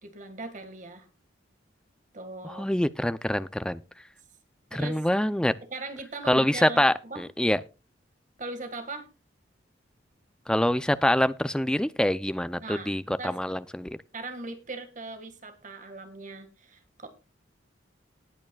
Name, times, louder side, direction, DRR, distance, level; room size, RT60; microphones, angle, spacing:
voice 1, 0.0-1.1 2.1-2.7 4.7-5.0 5.6-7.2 8.4-9.1 12.6-13.4 14.1-17.1, right 2 dB, 40° right, 8 dB, 1.8 m, -39 dB
voice 2, 2.4-3.8 4.7-5.5 6.3-7.6 10.5-13.9, left 1 dB, 5° left, 14 dB, 0.5 m, -25 dB
19.0 x 9.0 x 2.3 m, 0.30 s
head